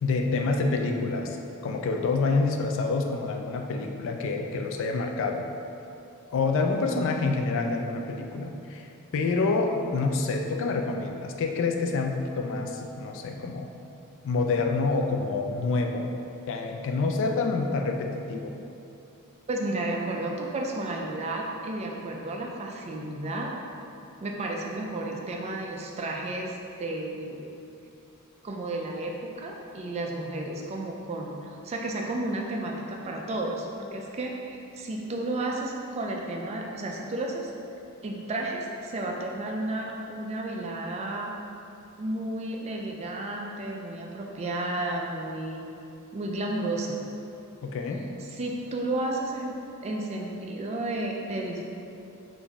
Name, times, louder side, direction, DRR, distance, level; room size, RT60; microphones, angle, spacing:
voice 1, 0.0-1.4 1.6-5.5 6.3-8.9 9.1-13.7 14.2-16.1 16.5-18.6 47.6-48.1, left 3 dB, 60° left, 3 dB, 0.3 m, -27 dB
voice 2, 19.5-23.5 24.2-27.5 28.4-37.5 38.0-41.3 42.0-45.7 46.1-47.0 48.3-49.5 49.8-51.6, right 2 dB, 30° right, 0 dB, 0.3 m, -32 dB
3.8 x 2.6 x 3.4 m, 2.7 s
head